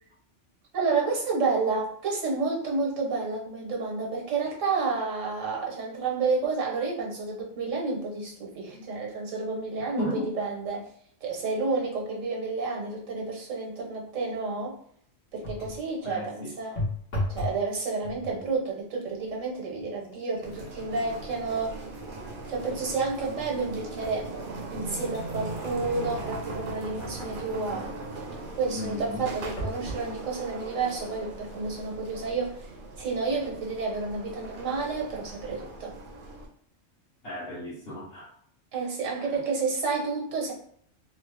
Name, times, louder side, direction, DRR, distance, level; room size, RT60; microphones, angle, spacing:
voice 1, 0.7-10.9 11.2-14.8 15.3-16.8 17.3-21.7 22.5-24.3 24.7-27.9 28.6-32.7 33.0-36.0 38.7-40.5, right 4 dB, 85° right, -1 dB, 1.4 m, -30 dB
voice 2, 10.0-10.3 16.0-16.5 28.7-29.3 37.2-38.3 39.2-39.3, left 1 dB, 50° left, -6 dB, 1.4 m, -34 dB
sound 1, 15.4-15.9 16.8-17.7 18.0-18.5 19.2-19.4 19.8-23.4 23.8-23.9 24.6-27.3 29.6-30.1 30.8-30.9 31.1-31.2, left 1 dB, 70° left, 1.5 m, -37 dB
sound 2, 20.4-36.5, right 2 dB, 50° right, 0.8 m, -39 dB
3.6 x 2.0 x 3.3 m, 0.62 s
omnidirectional pair, 1.3 m